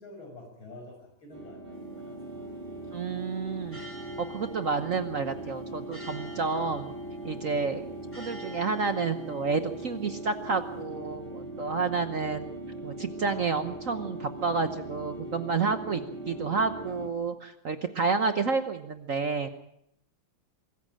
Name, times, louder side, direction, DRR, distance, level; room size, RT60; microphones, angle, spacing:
voice 1, 0.0-2.4, left 2 dB, 75° left, 3 dB, 6.7 m, -48 dB
sound 1, 1.3-17.1, right 1 dB, 25° right, 3.7 m, -40 dB
sound 2, 1.7-10.8, left 2 dB, 5° left, 4.3 m, -50 dB
voice 2, 2.9-3.8 4.2-6.9 7.2-7.8 8.1-12.5 12.8-19.5, right 4 dB, 50° right, 9 dB, 1.1 m, -30 dB
23.5 x 14.5 x 8.9 m, 0.74 s
omnidirectional pair, 2.2 m